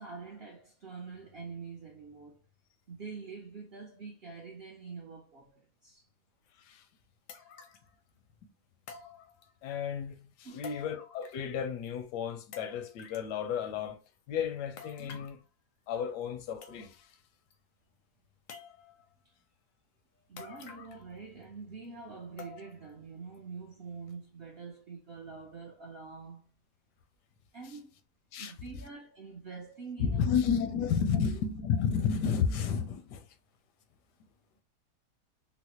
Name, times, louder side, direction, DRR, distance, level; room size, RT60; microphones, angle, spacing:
voice 1, 0.0-2.4 2.9-6.1 10.4-10.8 15.0-15.2 19.2-19.3 20.3-26.5 27.5-27.9 28.4-30.4, right 4 dB, 60° right, 0.6 m, -45 dB
sound 1, 6.5-6.6 7.3-7.9 8.9-9.7 10.6-11.6 11.8-11.9 12.5-13.3 14.8-15.4 16.2-16.3 16.6-17.1 17.5-17.6 18.5-19.1 20.4-21.1 21.4-21.5 22.4-22.9 23.3-23.4 24.1-24.2, left 6 dB, 70° left, 0.8 m, -49 dB
voice 2, 9.6-14.0 14.3-15.4 15.9-17.1 28.3-28.5 30.0-33.2, left 7 dB, 85° left, 1.2 m, -32 dB
3.9 x 2.0 x 2.9 m
omnidirectional pair, 1.7 m